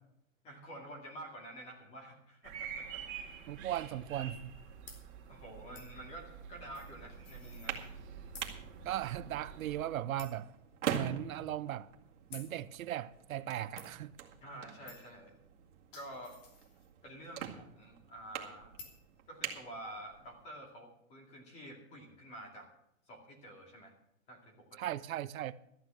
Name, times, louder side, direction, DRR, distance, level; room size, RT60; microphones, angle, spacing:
voice 1, 0.4-3.0 5.3-7.8 14.4-15.3 15.9-16.4 17.0-18.7 19.3-22.7 23.1-23.9 24.3-25.0, right 1 dB, 15° left, 2.4 m, -49 dB
sound 1, 2.4-9.8, right 7 dB, 40° right, 2.6 m, -48 dB
voice 2, 3.5-4.5 8.8-10.5 10.9-11.9 12.3-14.1 24.8-25.6, right 12 dB, 90° right, 0.7 m, -37 dB
sound 2, 4.9-5.0 5.8-6.0 6.7-8.1 8.3-8.6 8.9-9.0 9.4-9.5 10.2-10.5 11.1-11.2 12.3-12.5 13.8-13.9 14.9-15.2 15.7-17.1 18.8-19.0, left 4 dB, 60° left, 3.2 m, -53 dB
sound 3, 7.4-20.5, right 9 dB, 60° right, 2.2 m, -44 dB
13.5 x 9.6 x 6.3 m
hypercardioid pair, 175°, 40 cm